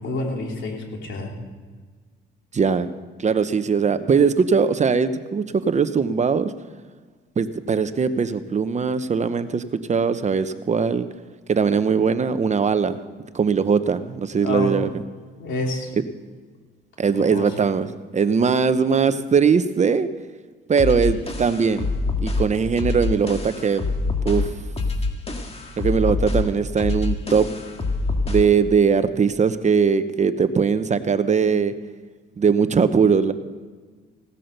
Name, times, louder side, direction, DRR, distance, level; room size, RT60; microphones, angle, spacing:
voice 1, 0.0-1.3 14.4-14.7 15.4-15.9 17.1-17.5, left 2 dB, 70° left, 1 dB, 3.2 m, -28 dB
voice 2, 2.5-2.9 3.2-6.5 7.4-9.6 9.9-11.1 11.5-13.0 13.3-14.9 17.0-17.9 18.1-20.1 20.7-21.9 22.2-23.8 24.2-24.5 25.8-27.5 28.3-31.7 32.4-33.3, right 6 dB, 35° right, 12 dB, 0.8 m, -20 dB
sound 1, 20.8-28.6, left 3 dB, 30° left, 1.9 m, -26 dB
17.0 x 8.5 x 6.6 m, 1.5 s
cardioid pair, 90°, 20 cm